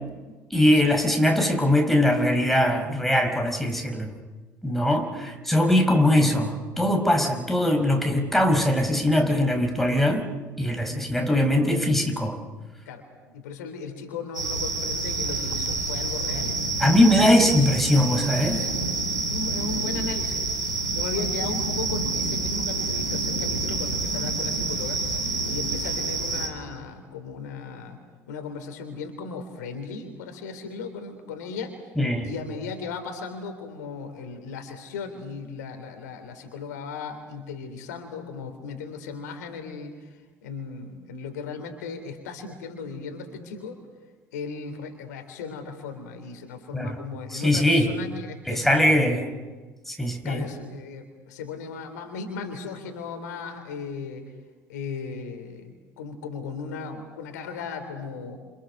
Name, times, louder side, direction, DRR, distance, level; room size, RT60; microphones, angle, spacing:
voice 1, 0.5-4.1 4.6-10.3 10.6-12.4 16.8-18.7 32.0-32.3 46.7-47.0 47.3-47.9 48.5-49.2 49.9-50.5, left 1 dB, ahead, 4 dB, 4.9 m, -21 dB
voice 2, 10.8-11.1 12.9-13.0 13.3-16.6 17.6-17.7 18.5-18.9 19.2-25.0 25.5-28.0 28.3-31.8 32.2-43.8 44.3-49.4 50.2-54.3 54.7-58.4, left 5 dB, 70° left, 6 dB, 3.5 m, -37 dB
sound 1, 14.3-26.5, right 3 dB, 90° right, 2.5 m, -28 dB
28.0 x 28.0 x 6.7 m, 1.3 s
figure-of-eight pair, 60°, 9 cm